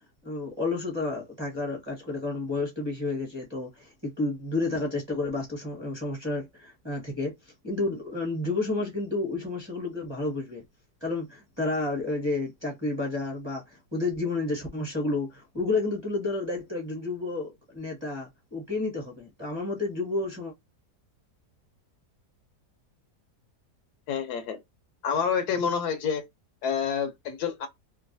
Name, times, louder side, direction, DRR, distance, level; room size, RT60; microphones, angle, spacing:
voice 1, 0.2-10.6 11.0-20.5, left 3 dB, 20° right, 1.0 m, -31 dB
voice 2, 24.1-24.6 25.0-26.2 26.6-27.7, left 6 dB, 75° left, 1.1 m, -28 dB
3.0 x 2.3 x 2.5 m
omnidirectional pair, 1.8 m